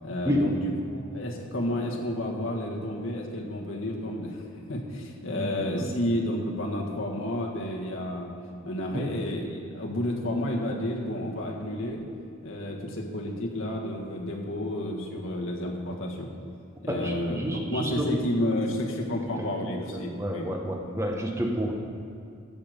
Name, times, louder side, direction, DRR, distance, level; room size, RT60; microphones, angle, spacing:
voice 1, 0.0-4.4 4.7-8.3 8.6-12.0 12.4-16.3 16.8-17.4 17.7-20.5, left 1 dB, 65° left, -1 dB, 1.7 m, -31 dB
voice 2, 16.9-18.1 19.6-21.7, equal, 15° right, 1 dB, 0.9 m, -29 dB
14.5 x 7.7 x 5.2 m, 2.4 s
head